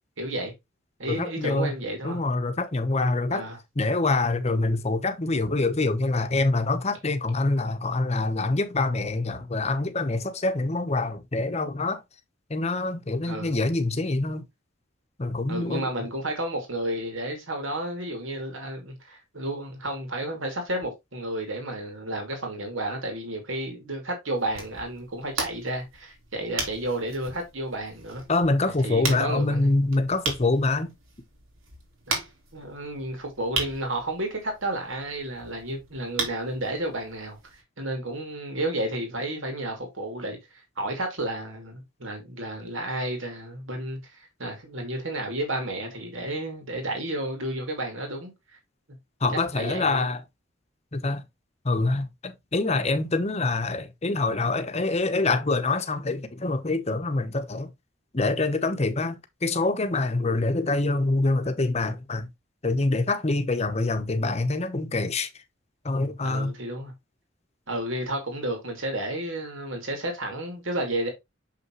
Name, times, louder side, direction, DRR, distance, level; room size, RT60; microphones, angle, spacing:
voice 1, 0.2-0.5 1.0-2.2 3.3-3.6 13.2-13.5 15.5-28.2 28.8-29.6 32.1-32.2 32.5-37.4 37.8-48.3 49.6-50.1 66.2-66.9 67.7-71.1, right 1 dB, 75° right, 2.6 m, -32 dB
voice 2, 1.1-1.7 2.0-3.5 3.8-12.0 12.5-14.4 15.2-15.8 28.3-30.9 49.2-50.2 50.9-51.2 51.6-57.7 58.1-62.3 62.6-65.3 65.8-66.5, left 2 dB, 30° left, 0.9 m, -25 dB
sound 1, 24.4-37.6, right 4 dB, 90° right, 3.0 m, -37 dB
6.8 x 5.6 x 3.1 m
head